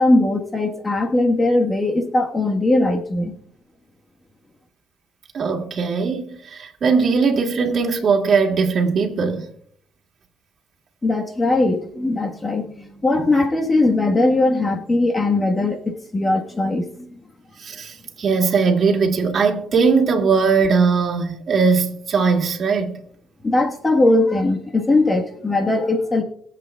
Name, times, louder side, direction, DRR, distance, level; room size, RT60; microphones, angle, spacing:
voice 1, 0.0-3.3 11.0-17.2 23.4-26.2, left 2 dB, 25° left, 1.4 m, -19 dB
voice 2, 5.3-9.5 13.2-13.3 17.6-23.0, right 5 dB, 50° right, 2.1 m, -19 dB
22.5 x 7.6 x 2.3 m
cardioid pair, 90°, 0 cm